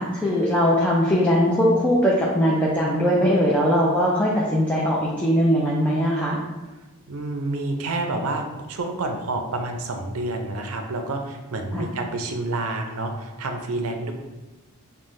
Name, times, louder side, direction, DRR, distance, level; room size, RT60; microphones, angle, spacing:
voice 1, 0.0-6.4 11.7-11.9, equal, 5° left, -5 dB, 0.5 m, -20 dB
voice 2, 7.1-14.1, right 2 dB, 75° right, 4 dB, 0.5 m, -28 dB
5.5 x 2.2 x 3.1 m, 1.1 s
head